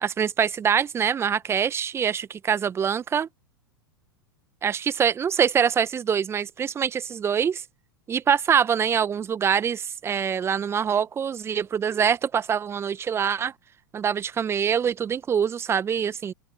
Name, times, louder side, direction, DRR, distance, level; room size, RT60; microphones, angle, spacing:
voice 1, 0.0-3.3 4.6-7.6 8.1-13.5 13.9-16.3, right 7 dB, 20° right, 1.4 m, -24 dB
open air
figure-of-eight pair, 90°, 12 cm